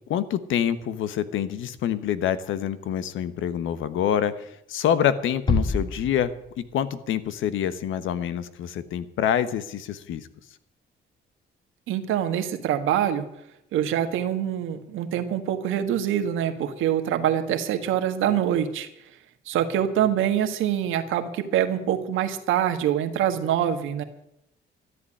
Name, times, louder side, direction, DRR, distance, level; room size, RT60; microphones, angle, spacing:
voice 1, 0.1-6.3 6.6-10.3, left 9 dB, 80° left, 13 dB, 1.2 m, -26 dB
Bass drum, 5.5-6.9, left 3 dB, 25° left, 1.5 m, -27 dB
voice 2, 11.9-13.3 13.7-18.9 19.5-24.0, right 10 dB, 90° right, 8 dB, 1.6 m, -25 dB
13.5 x 8.2 x 10.0 m, 0.80 s
cardioid pair, 90°, 20 cm